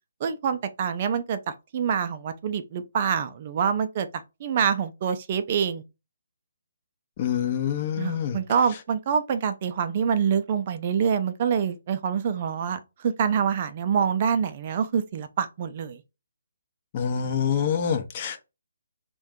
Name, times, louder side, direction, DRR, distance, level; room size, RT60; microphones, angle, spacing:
voice 1, 0.2-1.4 1.7-5.8 8.0-16.0, right 7 dB, 40° right, 0.3 m, -26 dB
voice 2, 7.2-8.4 16.9-18.4, left 8 dB, 35° left, 0.5 m, -26 dB
2.5 x 2.2 x 3.5 m
figure-of-eight pair, 145°, 0 cm